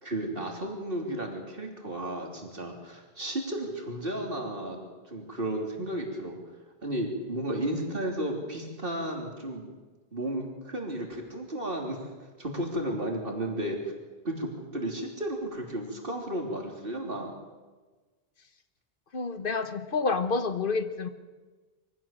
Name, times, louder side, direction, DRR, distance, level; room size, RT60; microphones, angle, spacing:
voice 1, 0.0-4.8 5.1-6.4 6.8-9.7 10.1-12.0 12.4-13.9 14.2-17.3, right 1 dB, 60° right, 2 dB, 3.5 m, -33 dB
voice 2, 19.1-21.1, left 4 dB, 60° left, 10 dB, 1.3 m, -28 dB
23.5 x 15.5 x 7.5 m, 1.3 s
omnidirectional pair, 1.0 m